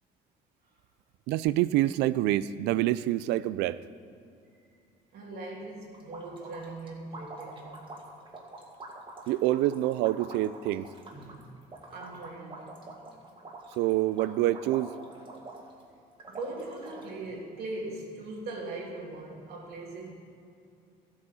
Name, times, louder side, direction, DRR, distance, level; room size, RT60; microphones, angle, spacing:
voice 1, 1.3-3.8 9.3-10.9 13.8-14.9, right 15 dB, 90° right, 17 dB, 0.4 m, -26 dB
voice 2, 5.1-7.8 11.1-11.5 11.9-13.2 16.3-20.1, right 2 dB, 70° right, -2 dB, 2.7 m, -40 dB
sound 1, 5.9-15.8 16.2-17.1, right 2 dB, 30° right, 2.0 m, -45 dB
13.5 x 8.5 x 5.5 m, 2.5 s
cardioid pair, 110°, 17 cm